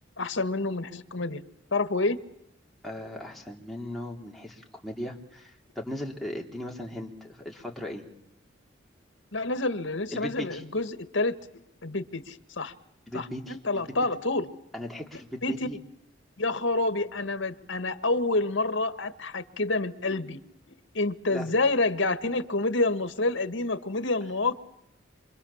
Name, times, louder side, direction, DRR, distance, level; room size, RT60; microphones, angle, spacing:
voice 1, 0.2-1.4 1.7-2.2 9.3-11.3 11.8-12.7 13.1-14.5 15.4-15.7 16.4-20.4 20.9-24.5, left 2 dB, 75° left, 11 dB, 1.7 m, -28 dB
voice 2, 2.8-8.0 10.1-10.6 13.1-13.6 14.7-15.8 21.3-21.5, left 1 dB, ahead, -2 dB, 3.4 m, -37 dB
27.5 x 25.5 x 7.3 m, 0.81 s
head